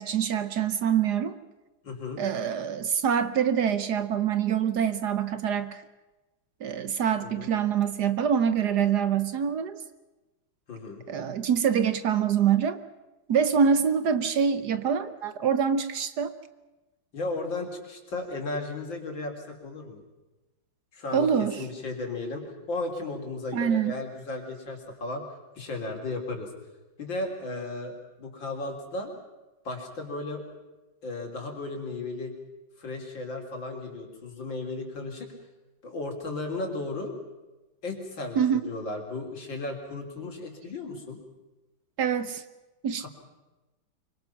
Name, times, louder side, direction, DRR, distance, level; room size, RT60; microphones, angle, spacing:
voice 1, 0.0-1.3 2.2-5.8 6.6-9.8 11.1-12.8 13.3-16.3 21.1-21.6 23.5-24.0 38.3-38.6 42.0-42.4 42.8-43.1, right 7 dB, 60° right, 12 dB, 1.4 m, -25 dB
voice 2, 1.8-2.2 7.2-7.5 10.7-11.0 17.1-20.0 20.9-21.3 21.6-25.2 25.6-26.5 27.0-29.1 29.6-30.4 31.0-32.3 32.8-35.3 35.8-37.1 37.8-41.2 43.0-43.1, left 2 dB, 70° left, 2 dB, 4.2 m, -35 dB
25.5 x 23.5 x 5.9 m, 1.1 s
omnidirectional pair, 2.1 m